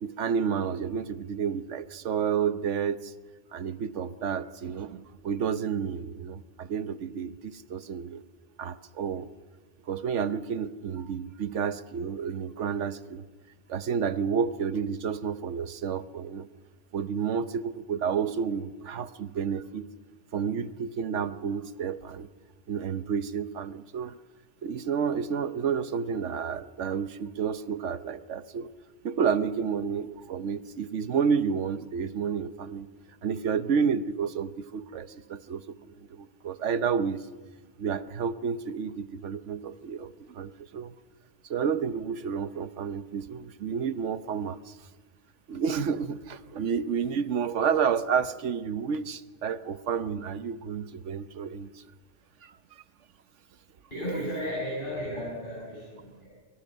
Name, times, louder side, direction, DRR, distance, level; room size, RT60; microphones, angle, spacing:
voice 1, 0.0-3.1 3.5-8.2 8.6-9.3 9.9-13.2 13.7-16.5 16.9-19.9 20.3-22.3 22.7-24.2 24.6-28.7 29.0-32.9 33.2-37.3 37.8-40.9 41.5-44.8 45.5-51.8 52.4-52.8, right 6 dB, 85° right, 12 dB, 1.2 m, -30 dB
voice 2, 53.9-56.3, equal, 45° left, -6 dB, 7.3 m, -34 dB
25.5 x 23.5 x 5.4 m, 1.4 s
omnidirectional pair, 1.2 m